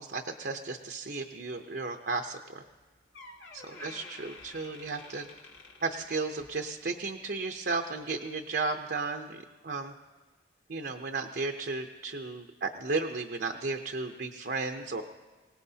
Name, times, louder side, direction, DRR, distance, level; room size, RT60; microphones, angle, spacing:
voice 1, 0.0-2.6 3.8-5.3 5.8-9.9 10.7-15.0, right 3 dB, 55° right, 4 dB, 0.7 m, -34 dB
Door, 2.7-2.8 3.1-6.6 7.0-7.3 8.0-8.1, left 3 dB, 80° left, 2.4 m, -50 dB
25.5 x 18.5 x 2.8 m, 1.3 s
head